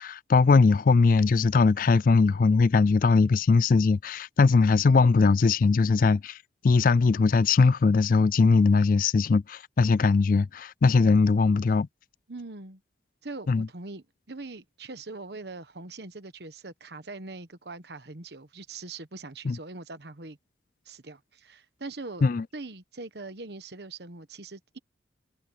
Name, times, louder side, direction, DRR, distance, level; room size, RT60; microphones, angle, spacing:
voice 1, 0.0-6.4 6.6-11.9 13.5-13.7 19.4-19.6 22.2-22.4, left 4 dB, 45° left, 0.3 m, -20 dB
voice 2, 12.3-12.8 13.2-20.4 20.8-22.3 22.5-24.8, right 3 dB, 60° right, 1.2 m, -42 dB
head